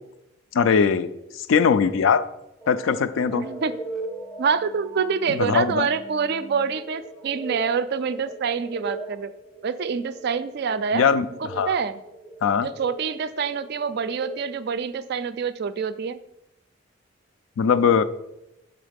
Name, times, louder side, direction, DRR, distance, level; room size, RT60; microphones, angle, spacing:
voice 1, 0.5-2.2 2.7-3.4 5.3-5.9 10.9-11.7 12.4-12.7 17.6-18.0, left 6 dB, 70° left, 13 dB, 0.4 m, -21 dB
sound 1, 2.6-14.8, right 2 dB, ahead, 0.6 m, -40 dB
voice 2, 3.3-3.7 4.4-9.3 9.6-11.0 11.4-12.0 12.6-16.2, right 6 dB, 50° right, 13 dB, 0.3 m, -26 dB
6.4 x 3.8 x 5.1 m, 0.88 s
head